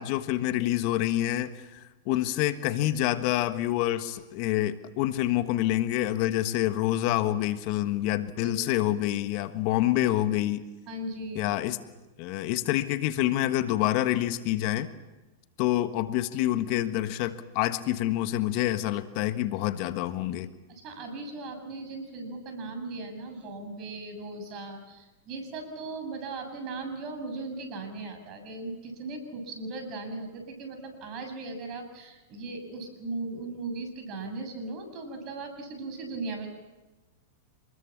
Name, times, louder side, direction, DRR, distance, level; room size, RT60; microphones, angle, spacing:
voice 1, 0.0-10.6 11.3-11.8 12.2-14.9 15.6-20.5, left 14 dB, 50° left, 10 dB, 1.4 m, -27 dB
voice 2, 8.4-8.8 10.9-11.5 20.7-36.5, right 3 dB, 40° right, 6 dB, 7.4 m, -38 dB
27.5 x 21.0 x 7.4 m, 1.1 s
hypercardioid pair, 110°, 0 cm